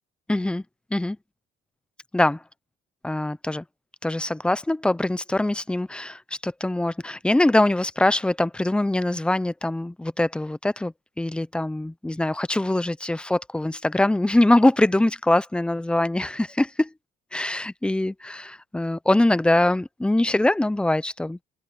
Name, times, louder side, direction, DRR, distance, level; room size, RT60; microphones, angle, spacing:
voice 1, 0.3-0.6 0.9-1.2 2.1-2.4 3.0-3.6 4.0-16.9 17.3-21.4, left 1 dB, 5° left, 0.7 m, -23 dB
cardioid pair, 110°, 17 cm